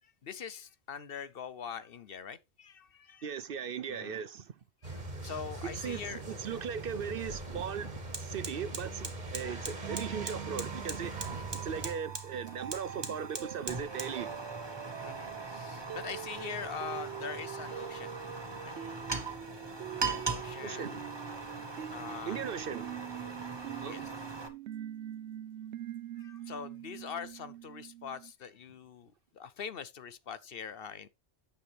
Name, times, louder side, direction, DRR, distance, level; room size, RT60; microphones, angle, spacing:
voice 1, 0.2-3.3 3.9-4.2 4.8-6.2 11.2-11.5 15.0-18.2 18.6-18.7 20.1-21.1 21.9-22.4 23.7-24.1 26.2-31.1, left 7 dB, 60° left, 0.9 m, -43 dB
voice 2, 3.2-4.5 5.6-14.4 20.6-21.0 21.5-21.6 22.3-23.0 23.8-24.0, right 7 dB, 60° right, 0.8 m, -38 dB
sound 1, 4.8-11.9, right 2 dB, 40° right, 1.7 m, -42 dB
Fire, 7.0-7.1 7.5-24.5, right 3 dB, 25° right, 1.3 m, -41 dB
sound 2, 9.8-28.3, right 11 dB, 85° right, 0.9 m, -44 dB
9.3 x 6.9 x 3.4 m
omnidirectional pair, 1.1 m